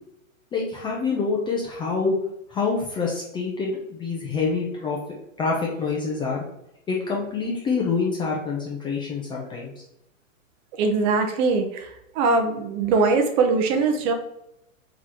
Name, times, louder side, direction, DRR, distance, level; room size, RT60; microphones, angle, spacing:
voice 1, 0.5-2.1 2.5-5.0 5.4-6.4 6.9-9.7, left 4 dB, 10° left, -3 dB, 0.5 m, -26 dB
voice 2, 10.8-11.9 12.1-14.1, right 4 dB, 30° right, 5 dB, 0.6 m, -21 dB
3.9 x 3.1 x 4.2 m, 0.82 s
hypercardioid pair, 130°, 41 cm